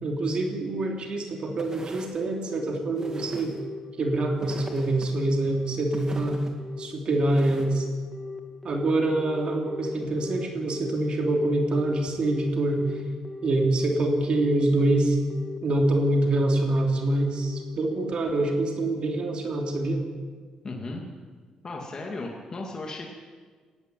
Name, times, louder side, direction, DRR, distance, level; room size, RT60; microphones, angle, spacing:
voice 1, 0.0-3.5 4.0-6.4 6.8-7.9 8.6-13.0 13.4-15.2 15.6-20.1, right 2 dB, 50° right, 2 dB, 3.2 m, -25 dB
sound 1, 1.6-2.2 3.0-3.6 4.4-5.1 5.9-6.5 7.3-7.7, right 2 dB, 30° right, 2.6 m, -42 dB
Telephone, 2.5-18.7, left 2 dB, 5° left, 2.4 m, -39 dB
voice 2, 20.6-21.0 21.6-23.1, left 2 dB, 30° left, 0 dB, 2.4 m, -35 dB
18.5 x 15.5 x 9.3 m, 1.5 s
cardioid pair, 145°, 2 cm